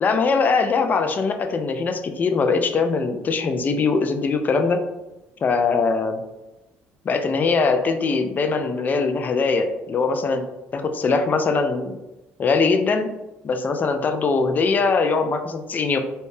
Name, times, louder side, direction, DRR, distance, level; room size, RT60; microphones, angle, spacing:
voice 1, 0.0-4.8 5.4-6.2 7.1-10.4 10.7-12.0 12.4-13.1 13.4-16.0, left 4 dB, 35° left, 6 dB, 0.3 m, -21 dB
2.7 x 2.1 x 3.2 m, 0.98 s
cardioid pair, 110°, 5 cm